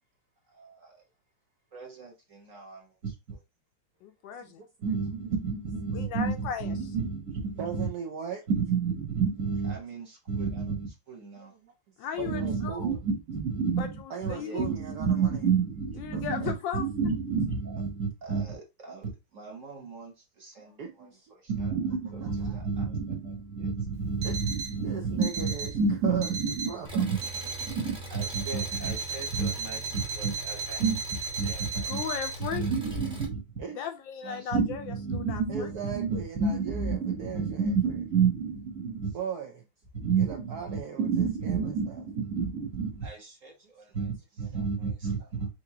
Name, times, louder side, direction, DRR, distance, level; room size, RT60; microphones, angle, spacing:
voice 1, 0.5-0.9 1.7-3.4 4.8-7.9 8.5-11.5 12.3-20.8 21.4-26.7 26.9-27.2 27.6-31.0 31.4-32.0 32.5-33.4 34.2-39.1 40.0-45.5, right 5 dB, 45° right, 1.2 m, -30 dB
voice 2, 4.0-4.6 5.9-6.7 12.0-12.9 13.8-13.9 14.3-14.6 16.0-16.8 31.9-32.7 33.7-34.8 35.1-35.7, left 7 dB, 75° left, 1.2 m, -35 dB
voice 3, 7.6-8.4 11.5-11.7 12.1-13.0 14.1-15.4 16.1-16.5 20.6-21.3 22.2-22.6 24.2-24.4 24.8-25.7 26.0-26.3 26.7-27.0 33.6-33.8 35.5-37.7 39.1-39.6 40.2-42.0, right 6 dB, 70° right, 1.0 m, -38 dB
Alarm, 24.2-24.8 25.2-25.8 26.2-26.8 27.2-27.8 28.2-32.3, right 4 dB, 85° right, 1.6 m, -36 dB
Engine, 26.8-33.2, right 1 dB, 5° right, 0.7 m, -42 dB
5.9 x 2.6 x 2.7 m
omnidirectional pair, 2.3 m